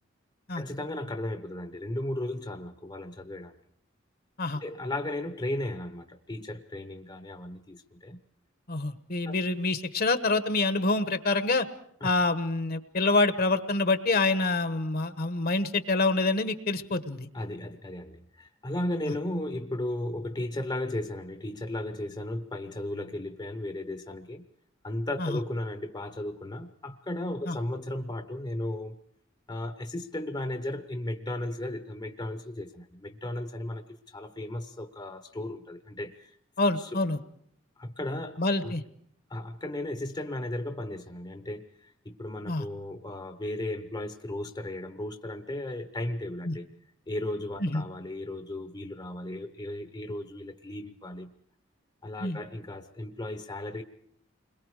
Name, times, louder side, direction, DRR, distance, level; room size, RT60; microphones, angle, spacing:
voice 1, 0.6-3.5 4.6-8.2 9.3-9.4 12.0-12.1 17.3-24.4 24.8-29.0 29.5-36.4 36.7-37.0 37.8-38.7 39.3-46.7 47.1-51.4 52.0-53.8, left 1 dB, 20° left, 0.9 m, -35 dB
voice 2, 8.7-11.7 12.0-17.3 25.2-25.4 27.5-27.6 36.6-37.2 38.4-38.8 42.5-42.6 46.5-46.6 47.6-47.8 52.2-52.4, left 3 dB, 50° left, 1.1 m, -26 dB
29.5 x 22.0 x 4.9 m
head